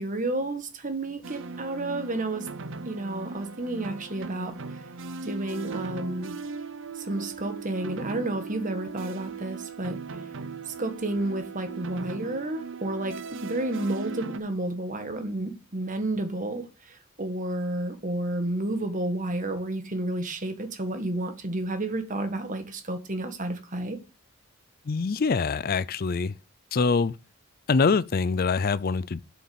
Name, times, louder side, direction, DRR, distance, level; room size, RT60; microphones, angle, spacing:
voice 1, 0.0-2.5 2.8-4.8 5.2-6.4 6.9-10.3 10.6-24.0, right 1 dB, 35° right, 1.5 m, -31 dB
sound 1, 1.2-14.4, right 4 dB, 60° right, 0.6 m, -38 dB
voice 2, 24.9-26.3 26.7-27.1 27.7-29.2, left 4 dB, 40° left, 0.4 m, -24 dB
7.2 x 6.6 x 5.5 m
head